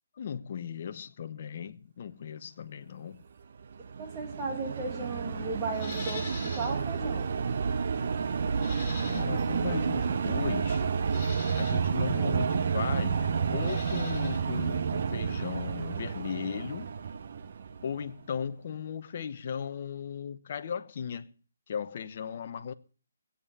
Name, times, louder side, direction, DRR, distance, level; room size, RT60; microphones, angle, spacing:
voice 1, 0.2-3.2 9.0-10.9 11.6-16.9 17.8-21.3 21.7-22.7, left 7 dB, 40° left, 0.9 m, -37 dB
sound 1, 3.6-18.1, right 6 dB, 50° right, 1.1 m, -30 dB
voice 2, 4.0-7.3, right 3 dB, 15° right, 2.0 m, -36 dB
Livestock farm animals working animals, 5.7-6.8 7.2-7.3 8.5-9.6 10.4-10.5 11.0-11.8 13.5-14.4 14.7-14.8, left 3 dB, 20° left, 5.7 m, -43 dB
16.5 x 8.4 x 7.4 m
hypercardioid pair, 165°, 0 cm